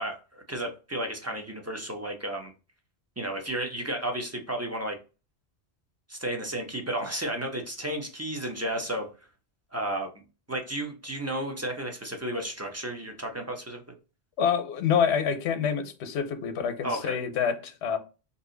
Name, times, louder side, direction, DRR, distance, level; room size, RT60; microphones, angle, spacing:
voice 1, 0.0-2.5 3.2-5.0 6.1-9.1 9.7-10.2 10.5-13.8 16.8-17.2, right 1 dB, 20° right, 0.4 m, -33 dB
voice 2, 14.4-18.0, left 7 dB, 80° left, 0.9 m, -27 dB
2.7 x 2.6 x 3.7 m
omnidirectional pair, 1.1 m